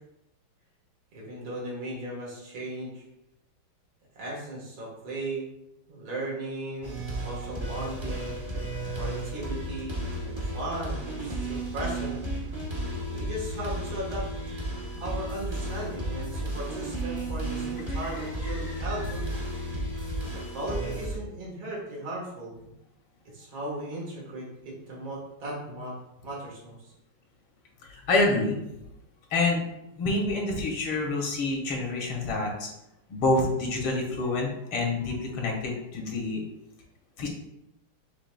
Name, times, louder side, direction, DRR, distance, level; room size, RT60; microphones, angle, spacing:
voice 1, 1.1-3.0 4.2-5.5 5.9-8.3 9.0-12.2 13.1-14.3 15.0-19.3 20.3-22.7 23.3-25.9 26.2-26.9, right 1 dB, 75° right, -4 dB, 2.2 m, -37 dB
sound 1, 6.8-21.2, right 1 dB, 35° right, 0.4 m, -33 dB
voice 2, 17.9-19.1 27.8-28.6 29.3-29.7 30.0-32.7 33.1-36.4 37.2-37.3, left 2 dB, 85° left, -1 dB, 1.9 m, -28 dB
6.7 x 3.5 x 2.2 m, 0.86 s
omnidirectional pair, 2.3 m